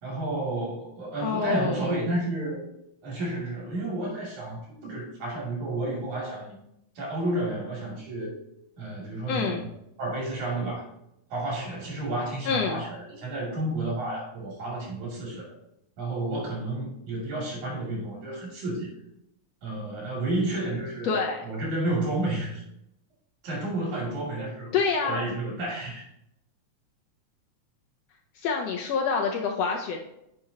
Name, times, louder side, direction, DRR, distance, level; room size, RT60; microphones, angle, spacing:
voice 1, 0.0-2.6 3.0-6.6 7.0-8.4 8.8-9.7 10.0-10.8 11.3-15.4 16.0-18.9 19.6-22.6 23.4-24.8 25.0-26.0, right 2 dB, 75° right, -4 dB, 4.0 m, -31 dB
voice 2, 1.2-2.0 9.3-9.6 12.4-12.8 21.0-21.4 24.7-25.3 28.3-30.0, left 5 dB, 75° left, 2 dB, 1.6 m, -27 dB
9.4 x 5.9 x 2.8 m, 0.80 s
omnidirectional pair, 3.4 m